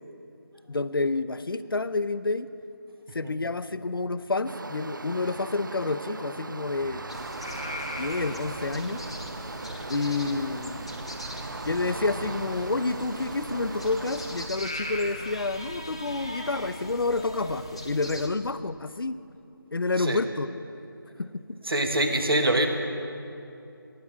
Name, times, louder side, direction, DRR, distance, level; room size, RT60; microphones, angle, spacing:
voice 1, 0.7-2.5 3.1-7.0 8.0-9.0 9.9-10.8 11.6-19.2 19.7-20.5 21.2-21.4, left 3 dB, 70° left, 13 dB, 0.6 m, -29 dB
sound 1, 4.4-14.5, right 3 dB, 55° right, 0.5 m, -39 dB
sound 2, 6.6-12.5, right 1 dB, 25° right, 2.1 m, -46 dB
sound 3, 7.1-18.3, left 1 dB, 15° left, 0.4 m, -39 dB
voice 2, 21.6-22.7, right 1 dB, 75° right, 5 dB, 1.6 m, -24 dB
19.5 x 9.5 x 4.8 m, 2.7 s
figure-of-eight pair, 170°, 12 cm